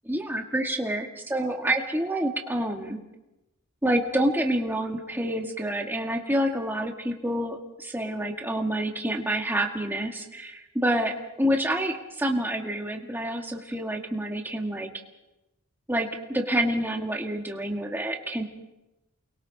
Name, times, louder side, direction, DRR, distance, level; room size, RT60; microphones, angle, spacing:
voice 1, 0.0-3.0 3.8-14.9 15.9-18.4, right 1 dB, 10° right, 2 dB, 2.0 m, -28 dB
29.0 x 22.5 x 4.2 m, 0.96 s
head